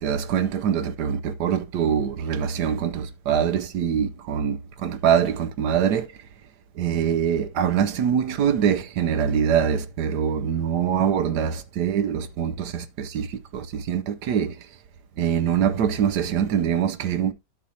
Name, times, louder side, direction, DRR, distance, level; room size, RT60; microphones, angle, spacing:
voice 1, 0.0-6.3 6.7-14.7 15.2-17.3, right 8 dB, 65° right, 1.2 m, -24 dB
9.4 x 7.1 x 2.7 m
omnidirectional pair, 2.2 m